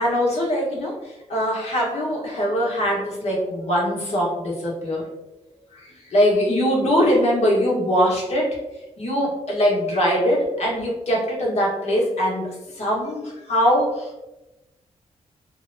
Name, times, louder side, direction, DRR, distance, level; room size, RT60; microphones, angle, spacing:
voice 1, 0.0-5.0 5.7-8.6 9.0-12.5 12.8-14.2, equal, 60° left, -4 dB, 1.1 m, -22 dB
2.8 x 2.1 x 2.6 m, 0.99 s
cardioid pair, 70°, 13 cm